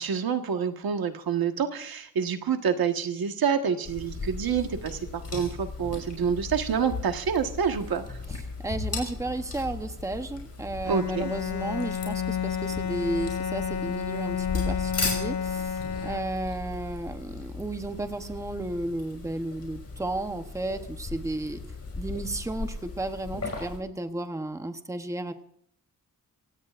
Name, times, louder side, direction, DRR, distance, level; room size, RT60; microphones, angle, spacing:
voice 1, 0.0-8.2 10.9-11.3, right 7 dB, 85° right, 6 dB, 1.5 m, -27 dB
sound 1, 3.8-23.8, left 3 dB, 45° left, 5.3 m, -37 dB
voice 2, 8.6-21.6 22.0-25.3, right 2 dB, 10° right, 7 dB, 0.9 m, -33 dB
Bowed string instrument, 10.8-16.6, left 8 dB, 85° left, 0.8 m, -31 dB
26.5 x 16.5 x 2.5 m, 0.67 s
wide cardioid pair, 170°, 35 cm